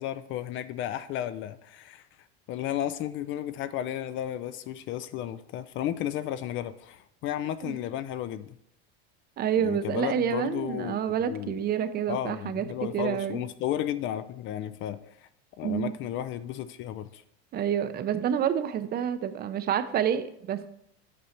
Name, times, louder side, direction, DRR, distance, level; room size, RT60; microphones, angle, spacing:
voice 1, 0.0-2.1 2.5-8.6 9.6-11.0 11.3-11.7 12.1-15.3 15.6-17.2, left 11 dB, 40° left, 14 dB, 0.4 m, -33 dB
voice 2, 9.4-12.6 12.9-13.4 15.6-15.9 17.5-20.7, right 9 dB, 30° right, 11 dB, 0.5 m, -28 dB
8.5 x 5.4 x 4.4 m, 0.75 s
supercardioid pair, 130°, 30 cm